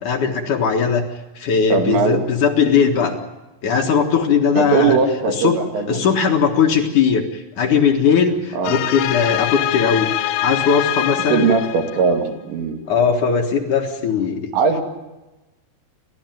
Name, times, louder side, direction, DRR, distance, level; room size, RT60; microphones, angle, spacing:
voice 1, 0.0-1.0 1.4-3.2 3.6-5.0 5.3-5.6 5.9-10.1 10.4-11.5 12.9-14.5, left 6 dB, 55° left, 2 dB, 2.7 m, -18 dB
voice 2, 1.7-2.2 4.6-6.0 8.5-8.8 11.3-12.8 14.5-14.8, right 5 dB, 90° right, 3 dB, 4.9 m, -19 dB
sound 1, 8.6-12.2, left 14 dB, 80° left, 3.1 m, -24 dB
29.5 x 13.0 x 9.2 m, 1.0 s
omnidirectional pair, 4.9 m